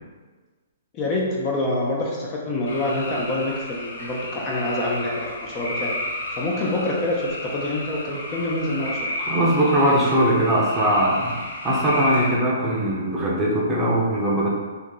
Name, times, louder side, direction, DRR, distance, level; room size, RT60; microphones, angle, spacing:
voice 1, 0.9-5.9 6.4-9.1, left 1 dB, 30° left, -3 dB, 0.7 m, -26 dB
sound 1, 2.6-12.4, left 1 dB, 70° left, 1.1 m, -32 dB
voice 2, 9.2-11.4 11.6-14.5, right 1 dB, 15° right, -5 dB, 0.8 m, -20 dB
2.8 x 2.7 x 3.7 m, 1.4 s
hypercardioid pair, 130°, 0 cm